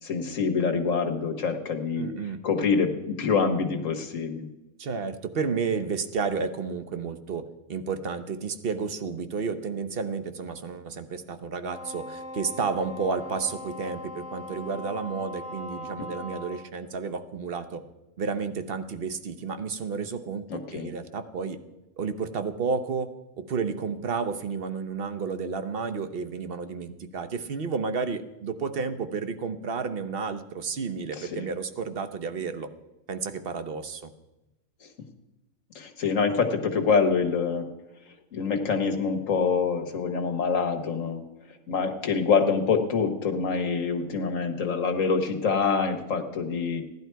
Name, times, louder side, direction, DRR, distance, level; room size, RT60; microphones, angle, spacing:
voice 1, 0.0-2.1 2.4-4.5 16.0-16.1 20.5-20.9 31.2-31.5 34.8-34.9 35.7-37.7 38.3-46.8, left 5 dB, 90° left, 5 dB, 1.7 m, -26 dB
voice 2, 2.0-2.4 4.8-7.4 7.7-17.8 18.2-20.4 20.7-21.6 22.0-23.1 23.4-32.7 33.1-34.1, right 5 dB, 50° right, 10 dB, 1.0 m, -31 dB
Wind instrument woodwind instrument, 11.7-16.7, left 2 dB, 10° right, 0.4 m, -40 dB
16.0 x 11.0 x 4.6 m, 0.97 s
omnidirectional pair, 1.3 m